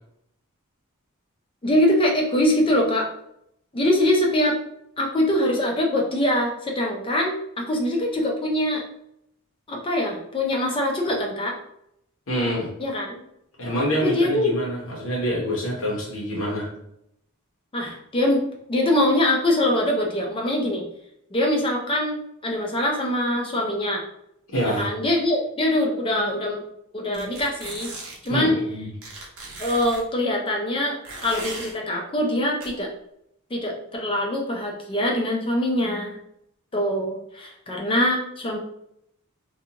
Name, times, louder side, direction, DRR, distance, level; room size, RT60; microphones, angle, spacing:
voice 1, 1.6-3.1 3.7-4.6 5.0-8.8 9.7-11.6 12.8-13.2 14.0-14.5 17.7-18.4 18.7-20.8 21.3-24.0 24.6-26.6 26.9-27.9 28.2-28.6 29.6-32.9 33.5-36.2 36.7-38.6, left 1 dB, 25° left, 0 dB, 0.5 m, -23 dB
voice 2, 12.3-12.7 13.6-16.7 24.5-24.9 28.3-28.9, equal, 65° left, -4 dB, 0.8 m, -26 dB
sound 1, 27.1-28.3 29.0-30.0 31.0-31.7 32.6-32.7, right 3 dB, 70° right, 0.7 m, -37 dB
2.5 x 2.3 x 2.8 m, 0.76 s
head